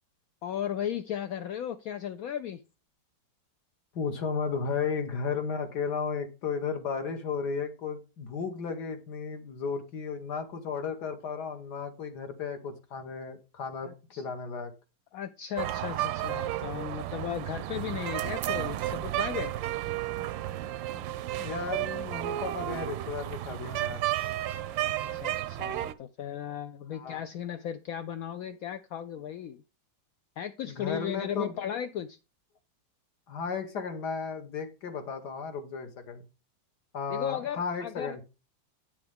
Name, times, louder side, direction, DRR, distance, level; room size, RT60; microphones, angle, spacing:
voice 1, 0.4-2.6 13.8-14.2 15.1-19.5 24.8-29.6 30.4-32.2 37.1-38.2, left 9 dB, 80° left, 9 dB, 0.8 m, -36 dB
voice 2, 4.0-13.9 14.2-14.7 21.4-24.0 26.9-27.2 30.6-31.5 33.3-36.2 36.9-38.2, left 5 dB, 65° left, 7 dB, 1.7 m, -34 dB
sound 1, 15.6-25.9, right 14 dB, 80° right, 1.3 m, -32 dB
8.8 x 6.9 x 3.5 m, 0.29 s
omnidirectional pair, 2.0 m